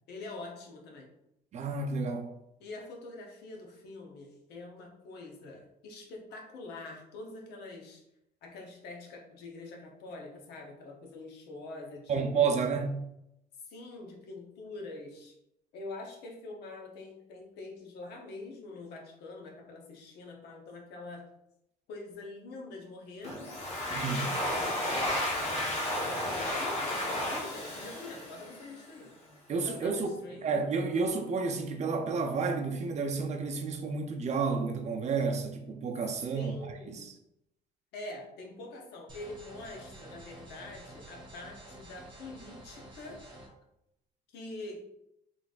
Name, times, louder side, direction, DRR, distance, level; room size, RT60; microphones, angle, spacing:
voice 1, 0.1-1.1 2.6-8.0 8.4-12.6 13.6-15.3 15.7-21.3 21.9-23.4 23.9-25.0 26.0-29.1 29.6-30.5 36.3-37.0 37.9-43.2 44.3-44.8, left 2 dB, 75° left, 0.9 m, -45 dB
voice 2, 1.5-2.3 12.1-13.0 23.9-24.3 29.5-36.5 36.9-37.1, right 5 dB, 40° right, 0.5 m, -31 dB
Domestic sounds home sounds, 23.2-28.9, left 1 dB, 40° left, 1.1 m, -33 dB
sound 1, 39.1-43.5, right 1 dB, 25° right, 1.2 m, -50 dB
3.9 x 3.2 x 2.4 m
cardioid pair, 110°, 17 cm